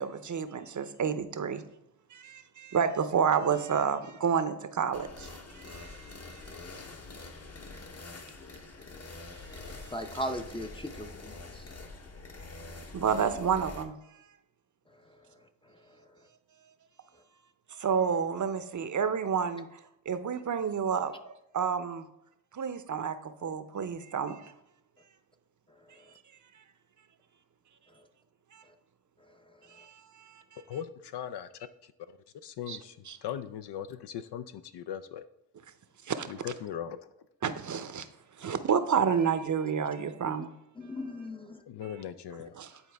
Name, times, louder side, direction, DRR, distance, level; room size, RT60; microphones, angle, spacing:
voice 1, 0.0-1.6 2.1-6.5 9.4-10.1 12.9-13.9 17.7-22.0 22.5-24.5 28.5-28.6 29.7-30.8 32.7-32.8 33.0-33.2 36.0-36.3 37.4-38.1 38.4-40.5 41.8-42.0 42.3-42.8, right 7 dB, 40° right, 0.7 m, -30 dB
sound 1, 4.9-13.8, left 3 dB, 35° left, 1.0 m, -45 dB
voice 2, 9.9-11.3 40.8-41.6, equal, 10° left, 0.6 m, -37 dB
voice 3, 30.7-31.5 31.8-31.9 32.4-35.2 36.3-37.0 41.7-42.5, left 9 dB, 65° left, 0.5 m, -39 dB
9.8 x 4.0 x 3.4 m
supercardioid pair, 50°, 44 cm